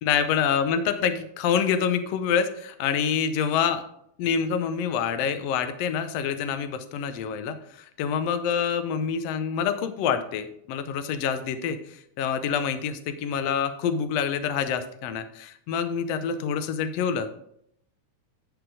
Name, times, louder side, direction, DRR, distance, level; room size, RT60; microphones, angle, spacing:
voice 1, 0.0-3.8 4.2-17.3, left 7 dB, 75° left, 10 dB, 1.6 m, -26 dB
9.9 x 5.0 x 4.8 m, 0.72 s
omnidirectional pair, 3.5 m